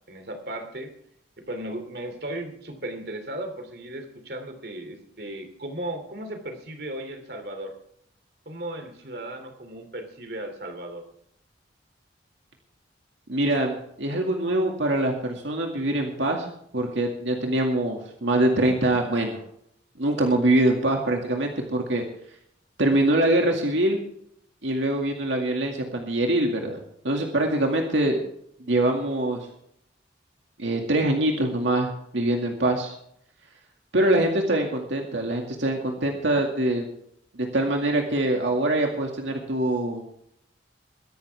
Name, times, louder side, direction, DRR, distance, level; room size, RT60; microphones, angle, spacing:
voice 1, 0.1-0.9 1.5-7.7 8.5-11.0, right 1 dB, 55° right, 6 dB, 2.8 m, -36 dB
voice 2, 13.3-16.5 16.7-19.4 20.0-22.0 22.8-24.0 24.6-26.8 27.0-28.2 28.7-29.4 30.6-32.9 33.9-36.9 37.5-40.0, right 1 dB, 75° right, 1 dB, 2.2 m, -24 dB
22.5 x 11.5 x 3.5 m, 0.72 s
head